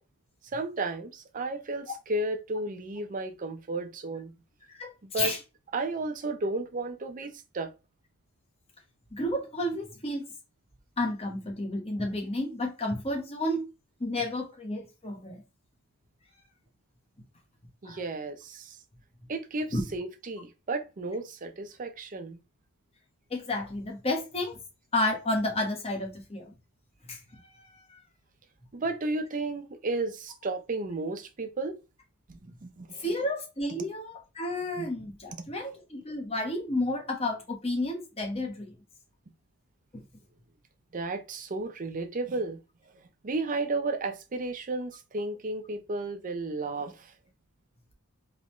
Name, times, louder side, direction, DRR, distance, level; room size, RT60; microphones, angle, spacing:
voice 1, 0.5-4.3 5.0-5.3 5.7-7.7 17.8-18.8 19.3-22.4 28.7-31.8 32.3-33.0 34.8-34.9 35.4-35.5 40.9-42.6 42.9-47.1, right 2 dB, 35° right, 0.5 m, -33 dB
voice 2, 9.1-10.3 11.0-13.7 14.0-15.4 17.8-18.0 19.7-19.8 23.3-24.6 24.9-26.5 27.1-27.4 27.9-28.0 33.0-38.8 39.9-40.0, left 1 dB, 25° left, 1.2 m, -31 dB
3.8 x 3.1 x 3.0 m
head